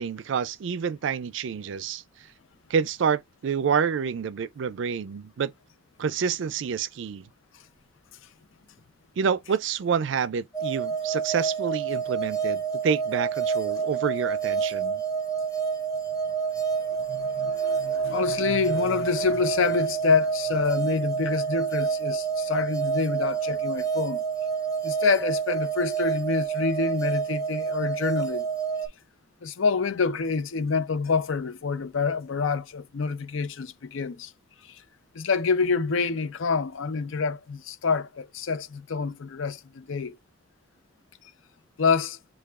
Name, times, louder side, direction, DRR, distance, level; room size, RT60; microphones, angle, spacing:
voice 1, 0.0-2.0 2.7-5.5 6.0-7.3 9.2-15.0, right 6 dB, 75° right, 0.4 m, -28 dB
sound 1, 10.5-28.9, right 6 dB, 15° left, 0.7 m, -28 dB
voice 2, 16.8-24.2 24.8-28.5 29.4-34.3 34.6-34.8 35.1-40.2 41.8-42.2, left 4 dB, 90° left, 0.5 m, -27 dB
6.6 x 2.3 x 2.3 m
head